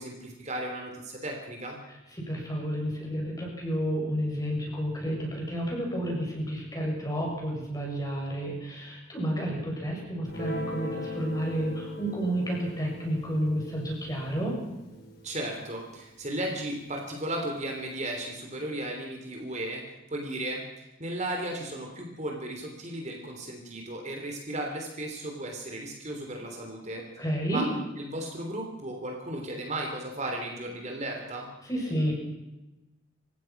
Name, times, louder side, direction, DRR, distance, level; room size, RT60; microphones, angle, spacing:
voice 1, 0.0-1.8 15.2-27.0 27.5-27.7 28.0-31.5, right 1 dB, 35° right, 2 dB, 3.3 m, -35 dB
voice 2, 1.9-14.5 27.2-27.6 31.6-32.1, equal, 20° left, -1 dB, 7.4 m, -31 dB
Guitar, 10.3-16.9, equal, 50° left, 5.2 m, -41 dB
29.0 x 16.0 x 6.0 m, 1.0 s
head